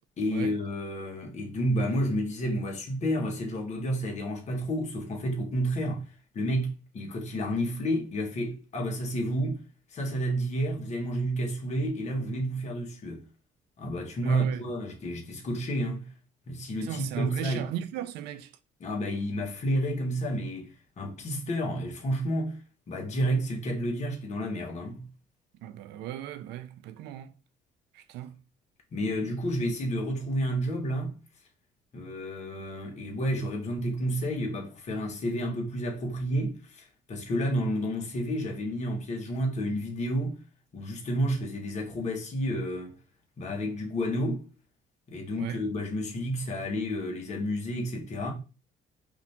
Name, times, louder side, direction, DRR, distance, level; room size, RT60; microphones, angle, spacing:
voice 1, 0.2-6.0 6.3-9.6 9.9-13.2 13.8-16.1 16.5-17.7 18.8-22.6 22.9-25.0 28.9-31.1 31.9-40.4 40.7-42.9 43.4-44.5 45.1-48.3, equal, 40° left, 1.6 m, -30 dB
voice 2, 14.2-14.7 16.8-18.5 25.6-27.3 27.9-28.4 29.2-29.3 45.3-45.6, right 12 dB, 90° right, 0.5 m, -37 dB
4.9 x 2.8 x 3.5 m
cardioid pair, 110°, 17 cm